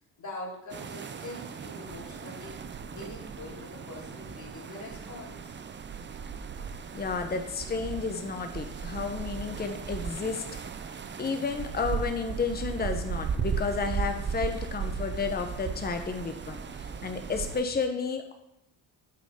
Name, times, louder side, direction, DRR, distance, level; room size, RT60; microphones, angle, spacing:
voice 1, 0.2-2.6 2.9-5.6, left 2 dB, 35° left, -3 dB, 3.0 m, -43 dB
sound 1, 0.7-17.6, right 6 dB, 25° right, 0.4 m, -36 dB
voice 2, 6.9-10.4 11.2-18.3, left 4 dB, 20° left, 6 dB, 0.8 m, -32 dB
8.4 x 4.1 x 5.0 m, 0.81 s
cardioid pair, 95°, 48 cm